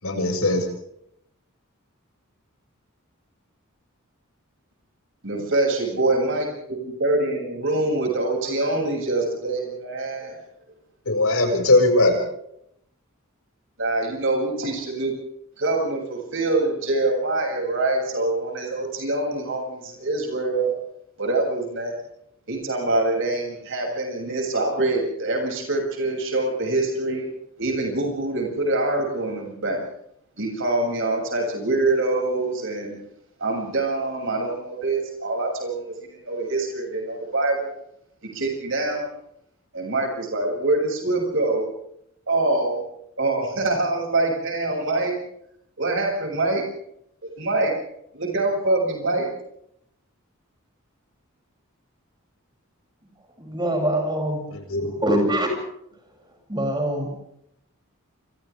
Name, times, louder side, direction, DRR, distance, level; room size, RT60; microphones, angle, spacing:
voice 1, 0.0-0.7 11.1-12.2 54.5-54.9, left 2 dB, 80° left, 2 dB, 7.2 m, -20 dB
voice 2, 5.2-10.4 13.8-15.1 15.6-20.7 21.2-21.9 22.5-27.3 27.6-29.8 30.4-33.0 33.4-37.7 38.2-39.1 39.7-41.7 42.3-42.8 43.2-45.1 45.8-46.6 47.4-47.7 48.1-49.3, right 2 dB, 65° right, 0 dB, 7.8 m, -25 dB
voice 3, 53.4-54.5 54.8-55.5 56.5-57.1, right 1 dB, 20° right, 1 dB, 7.9 m, -24 dB
29.5 x 27.5 x 3.7 m, 0.75 s
head